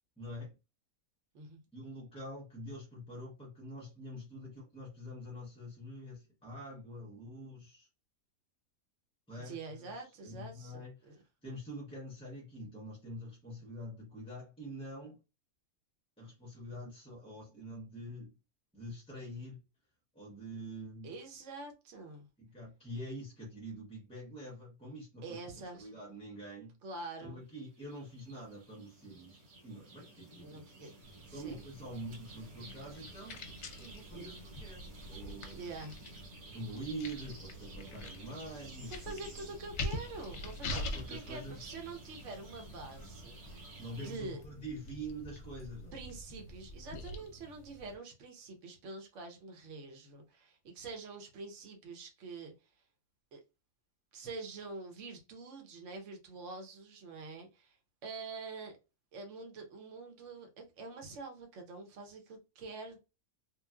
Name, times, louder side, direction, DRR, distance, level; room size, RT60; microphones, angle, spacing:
voice 1, 0.2-0.5 1.7-7.9 9.3-9.5 9.8-9.9 10.2-15.2 16.2-18.3 18.7-19.6 20.1-21.1 22.4-25.4 25.7-26.8 27.2-29.4 29.6-30.8 31.3-33.5 33.8-35.6 36.5-39.4 40.6-41.7 43.8-45.9, equal, 5° left, 0.6 m, -45 dB
voice 2, 9.3-11.2 21.0-22.3 25.2-26.0 26.8-27.4 30.4-30.9 31.2-31.6 34.1-34.3 35.5-36.0 38.9-44.4 45.9-52.7 53.3-53.4 54.1-57.8 58.0-58.8 59.1-63.0, right 3 dB, 60° right, 1.1 m, -46 dB
sound 1, 27.5-44.2, right 2 dB, 90° right, 1.9 m, -53 dB
sound 2, 31.0-47.9, left 1 dB, 60° left, 0.8 m, -45 dB
3.1 x 2.5 x 2.3 m
omnidirectional pair, 1.5 m